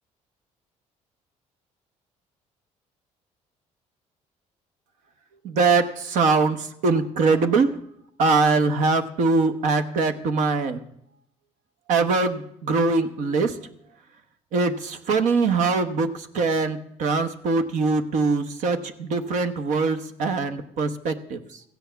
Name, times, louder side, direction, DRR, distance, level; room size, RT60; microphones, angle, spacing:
voice 1, 5.4-7.8 8.2-10.8 11.9-13.6 14.5-21.6, right 4 dB, 75° right, 8 dB, 1.1 m, -22 dB
15.5 x 8.1 x 6.9 m, 0.73 s
cardioid pair, 120°, 13 cm